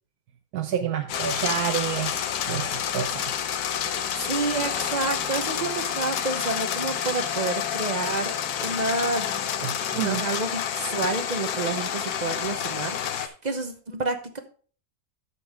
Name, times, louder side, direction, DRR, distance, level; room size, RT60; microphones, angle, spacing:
voice 1, 0.5-3.3 9.6-10.2, right 9 dB, 70° right, 6 dB, 1.2 m, -29 dB
sound 1, 1.1-13.3, left 9 dB, 70° left, 1.3 m, -29 dB
voice 2, 4.2-9.5 9.9-14.4, right 3 dB, 35° right, 7 dB, 0.7 m, -29 dB
11.0 x 7.2 x 3.4 m, 0.42 s
omnidirectional pair, 1.8 m